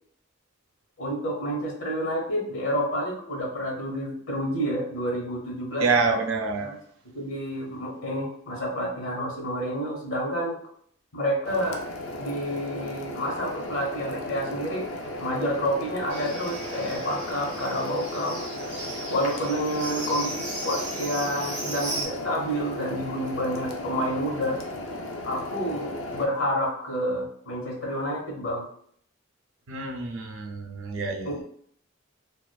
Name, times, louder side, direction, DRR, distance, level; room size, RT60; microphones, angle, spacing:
voice 1, 1.0-5.9 6.6-6.8 7.1-10.6 11.1-11.8 12.2-14.9 15.2-18.4 19.1-24.6 25.2-28.7 31.2-31.4, equal, 90° left, -2 dB, 1.0 m, -29 dB
voice 2, 5.8-6.7 29.7-31.4, right 4 dB, 85° right, 3 dB, 0.5 m, -27 dB
sound 1, 11.4-26.3, left 1 dB, 75° left, 0.4 m, -36 dB
Livestock farm animals working animals, 16.1-22.1, right 2 dB, 35° right, 0.7 m, -36 dB
2.4 x 2.3 x 2.2 m, 0.62 s
head